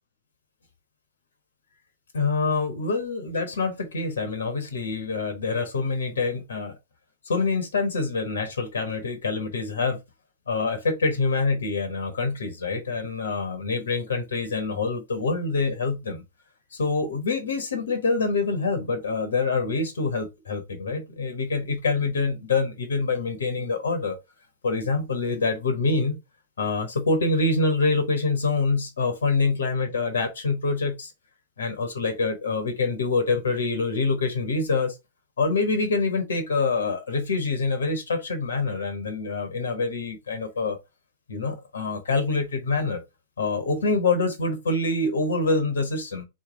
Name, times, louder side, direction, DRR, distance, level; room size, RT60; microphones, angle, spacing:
voice 1, 2.1-6.7 7.2-10.0 10.5-16.2 16.7-24.2 24.6-26.2 26.6-31.1 31.6-35.0 35.4-40.8 41.3-43.0 43.4-46.2, left 3 dB, 65° left, 1.0 m, -26 dB
4.2 x 3.2 x 3.5 m
figure-of-eight pair, 105°, 0 cm